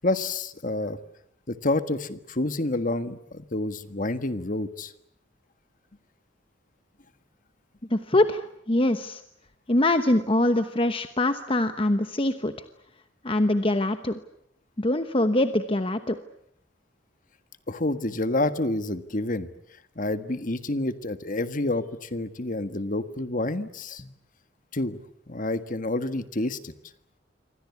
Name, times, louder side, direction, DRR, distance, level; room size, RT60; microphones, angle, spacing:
voice 1, 0.0-1.0 1.5-4.9 17.7-19.5 19.9-24.0 24.7-25.0 25.3-26.7, left 2 dB, 45° left, 11 dB, 1.6 m, -28 dB
voice 2, 7.9-8.4 8.7-9.2 9.7-12.5 13.2-14.2 14.8-16.2, left 1 dB, 30° left, 9 dB, 1.0 m, -23 dB
27.5 x 24.5 x 8.4 m, 0.73 s
head